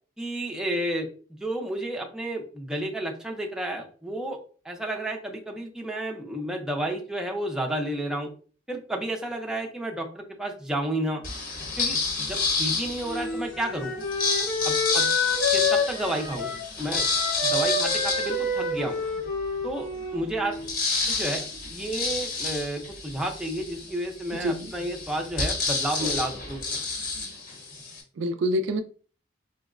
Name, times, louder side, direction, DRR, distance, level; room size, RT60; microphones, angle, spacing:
voice 1, 0.2-1.1 1.4-4.4 4.6-8.3 8.7-11.2 11.8-13.9 14.6-15.1 15.5-16.5 16.8-17.1 17.4-19.0 19.6-20.5 21.1-26.8, right 1 dB, 5° right, 0.4 m, -31 dB
sound 1, 11.2-13.4 14.0-19.2 19.7-19.8 20.0-28.0, left 4 dB, 50° left, 0.9 m, -29 dB
Wind instrument woodwind instrument, 13.0-20.8, left 3 dB, 90° left, 0.9 m, -28 dB
voice 2, 24.3-24.7 28.2-28.8, equal, 65° right, 0.3 m, -26 dB
4.4 x 2.1 x 2.4 m
head